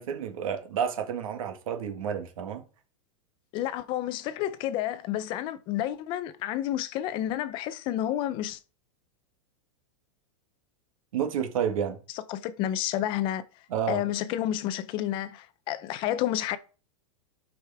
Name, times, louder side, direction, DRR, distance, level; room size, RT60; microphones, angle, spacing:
voice 1, 0.0-2.7 11.1-12.0 13.7-14.0, right 8 dB, 80° right, 1.9 m, -30 dB
voice 2, 3.5-8.6 12.3-13.4 13.9-16.6, left 12 dB, 30° left, 0.5 m, -30 dB
12.0 x 5.0 x 3.5 m
supercardioid pair, 165°, 17 cm